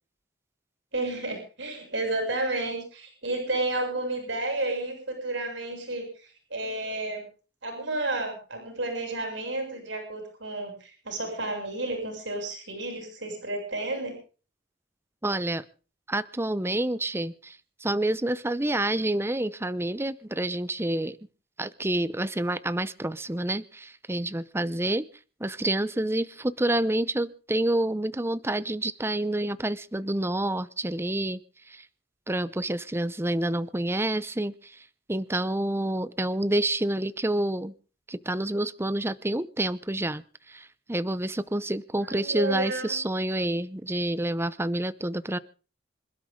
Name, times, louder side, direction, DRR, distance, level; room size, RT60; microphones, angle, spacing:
voice 1, 0.9-7.3 7.6-14.1 42.1-43.0, right 2 dB, 80° right, 3 dB, 7.1 m, -31 dB
voice 2, 15.2-15.6 16.1-21.2 21.6-25.1 25.4-31.4 31.7-31.9 32.3-37.7 38.1-45.4, right 1 dB, 15° right, 15 dB, 0.7 m, -28 dB
26.5 x 12.5 x 3.8 m, 0.38 s
head